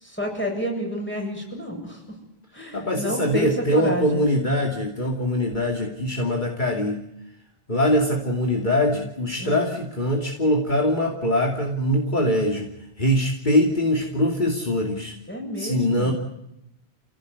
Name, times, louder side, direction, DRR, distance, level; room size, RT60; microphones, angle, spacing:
voice 1, 0.0-2.0 2.5-4.2 9.4-9.7 15.3-16.1, equal, 10° left, 1 dB, 7.6 m, -29 dB
voice 2, 2.7-7.0 7.7-12.7 13.0-15.1 15.6-16.1, left 1 dB, 45° left, 1 dB, 2.8 m, -23 dB
28.5 x 17.0 x 9.6 m, 0.83 s
omnidirectional pair, 1.1 m